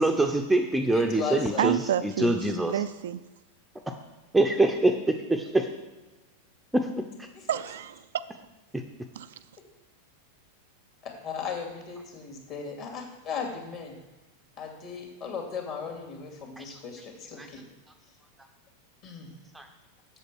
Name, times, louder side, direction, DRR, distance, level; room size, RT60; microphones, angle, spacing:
voice 1, 0.0-2.7 4.3-5.7 6.7-7.3 16.6-16.7 17.4-17.5 19.5-19.7, right 2 dB, 5° right, 4 dB, 0.7 m, -25 dB
voice 2, 0.8-1.7 7.3-7.5 11.0-14.0 14.6-17.6 19.0-19.3, left 6 dB, 40° left, 1 dB, 2.6 m, -37 dB
voice 3, 1.6-2.4 2.7-3.2 7.5-8.5 9.2-9.3, right 10 dB, 60° right, 12 dB, 0.4 m, -29 dB
8.0 x 7.4 x 6.2 m, 1.1 s
figure-of-eight pair, 90°, 0 cm